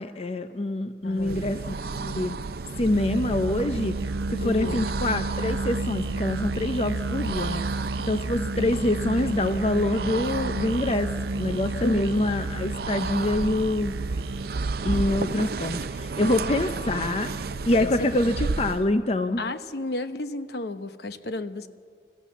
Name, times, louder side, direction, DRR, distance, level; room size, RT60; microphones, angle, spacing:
voice 1, 0.0-1.6 1.9-2.4 2.8-4.0 4.3-7.6 8.1-11.1 11.4-14.0 14.8-17.3 17.7-19.4, left 2 dB, 35° left, 9 dB, 0.6 m, -25 dB
voice 2, 1.0-1.4 4.4-4.9 11.8-12.2 17.8-18.1 19.4-21.7, left 2 dB, 65° left, 10 dB, 1.0 m, -32 dB
sound 1, 1.1-18.9, right 4 dB, 55° right, 0.6 m, -32 dB
Musical instrument, 2.9-14.6, right 2 dB, 90° right, 0.8 m, -32 dB
27.5 x 15.0 x 7.2 m, 2.1 s
head